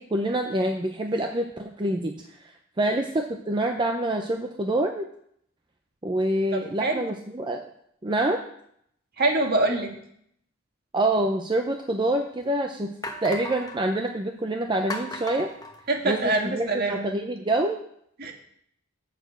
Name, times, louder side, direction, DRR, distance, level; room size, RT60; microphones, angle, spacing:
voice 1, 0.0-2.1 2.4-2.5 2.8-5.1 6.0-7.7 8.0-8.4 10.9-12.9 13.2-15.5 16.0-17.8, right 1 dB, 25° right, 4 dB, 0.6 m, -26 dB
voice 2, 6.5-7.0 9.2-9.9 15.9-17.1 18.2-18.3, right 2 dB, 50° right, 2 dB, 1.6 m, -25 dB
sound 1, 11.7-11.8 12.4-12.5 13.0-13.8 14.9-16.4, left 1 dB, 20° left, 1.0 m, -37 dB
7.1 x 6.7 x 7.6 m, 0.69 s
head